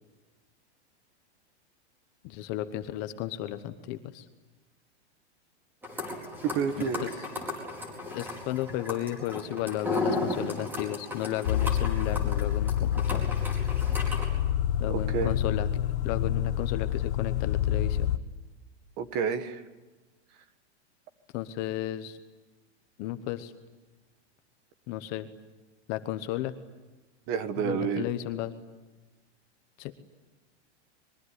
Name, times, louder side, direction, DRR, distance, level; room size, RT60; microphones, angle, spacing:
voice 1, 2.2-4.2 8.1-13.3 14.8-15.7 16.0-18.1 21.3-22.2 23.0-23.5 24.9-25.3 25.9-26.5 27.6-28.5 29.8-29.9, left 13 dB, 25° left, 10 dB, 1.0 m, -34 dB
sound 1, 5.8-14.2, left 2 dB, 5° right, 4.5 m, -35 dB
voice 2, 6.4-7.1 14.9-15.3 19.0-19.6 27.3-28.0, right 7 dB, 30° right, 10 dB, 1.6 m, -29 dB
sound 2, 11.4-18.2, left 10 dB, 70° left, 1.2 m, -27 dB
24.5 x 22.5 x 9.9 m, 1.2 s
supercardioid pair, 170°, 35 cm